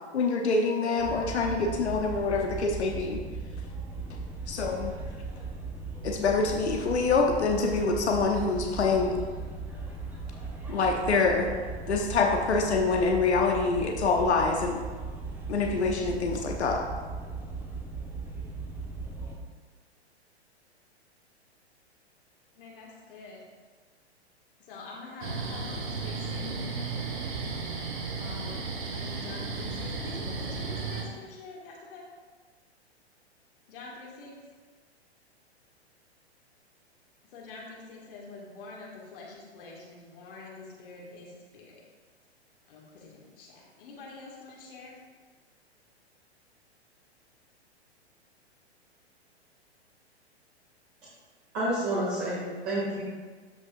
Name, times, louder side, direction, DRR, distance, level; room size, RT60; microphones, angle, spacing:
voice 1, 0.1-3.2 4.5-4.9 6.0-9.1 10.7-11.5 11.9-14.8 15.5-16.8, left 4 dB, 75° left, 2 dB, 0.9 m, -26 dB
sound 1, 1.0-19.4, right 3 dB, 5° right, 0.9 m, -38 dB
voice 2, 22.6-23.4 24.7-26.5 28.2-32.0 33.7-34.3 37.3-41.8 42.7-45.0, left 3 dB, 55° left, -3 dB, 2.0 m, -46 dB
sound 2, 25.2-31.0, right 4 dB, 50° right, 1.4 m, -34 dB
voice 3, 51.5-53.0, right 1 dB, 30° right, -8 dB, 2.4 m, -29 dB
13.0 x 5.3 x 2.6 m, 1.5 s
figure-of-eight pair, 110°, 33 cm